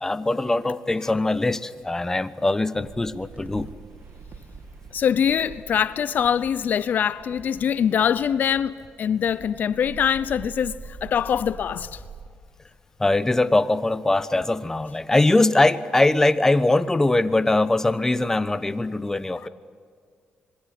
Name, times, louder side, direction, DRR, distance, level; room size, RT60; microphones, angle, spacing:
voice 1, 0.0-3.7 13.0-19.5, left 2 dB, 15° left, 1.0 m, -21 dB
sound 1, 2.7-12.3, right 5 dB, 60° right, 2.5 m, -44 dB
voice 2, 4.9-12.0, left 8 dB, 60° left, 0.7 m, -23 dB
26.5 x 22.0 x 8.4 m
cardioid pair, 110°, 3 cm